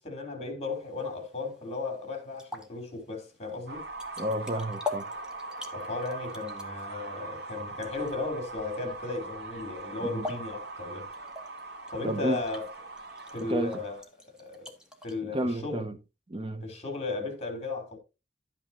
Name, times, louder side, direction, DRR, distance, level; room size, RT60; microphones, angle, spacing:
voice 1, 0.0-3.8 5.7-11.1 11.9-12.7 13.3-14.0 14.3-14.7 15.0-15.8 16.6-18.0, left 3 dB, 35° left, 3.9 m, -35 dB
sound 1, 0.7-15.2, left 3 dB, 5° right, 1.8 m, -45 dB
sound 2, 3.7-14.0, right 3 dB, 65° right, 1.8 m, -41 dB
voice 2, 4.2-5.1 10.0-10.3 12.0-12.4 13.4-13.8 15.3-16.0 16.3-16.7, right 1 dB, 30° right, 0.8 m, -31 dB
12.0 x 9.0 x 3.0 m
head